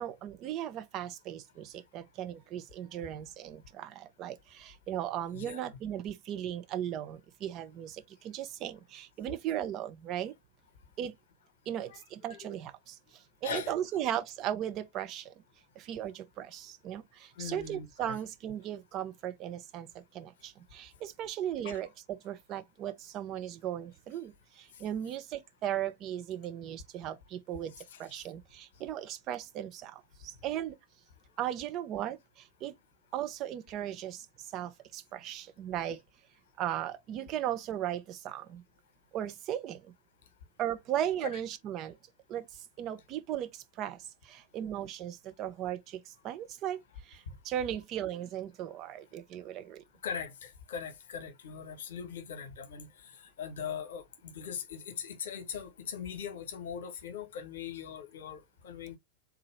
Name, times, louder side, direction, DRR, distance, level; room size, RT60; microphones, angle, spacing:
voice 1, 0.0-10.3 11.0-11.2 11.7-15.3 15.8-27.7 28.0-30.8 31.4-32.7 33.1-36.0 36.6-38.6 39.1-39.9 40.6-42.0 42.3-49.8, right 11 dB, 35° right, 0.7 m, -37 dB
voice 2, 5.3-5.6 11.9-12.0 12.3-12.5 13.4-13.7 17.4-18.2 21.6-21.8 27.7-28.2 50.0-59.0, left 7 dB, 60° left, 1.0 m, -41 dB
3.7 x 2.8 x 3.1 m
figure-of-eight pair, 90°, 0 cm